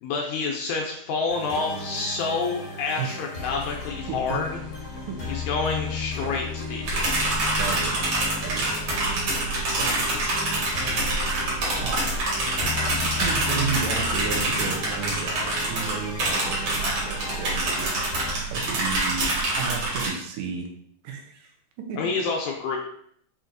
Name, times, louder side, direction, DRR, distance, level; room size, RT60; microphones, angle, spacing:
voice 1, 0.0-4.6 5.3-7.1 22.0-22.8, left 4 dB, 80° left, 0 dB, 1.7 m, -28 dB
sound 1, 1.3-18.3, left 3 dB, 60° left, 1.0 m, -35 dB
voice 2, 3.0-3.5 4.1-4.4 4.9-5.5 6.2-6.4 7.6-8.0 8.4-8.8 9.8-10.2 10.8-12.4 12.8-19.3 19.5-20.7 21.0-22.0, right 6 dB, 85° right, 2 dB, 2.2 m, -34 dB
sound 2, 6.8-20.1, right 2 dB, 55° right, 1.8 m, -26 dB
5.7 x 2.7 x 2.5 m, 0.70 s
omnidirectional pair, 3.7 m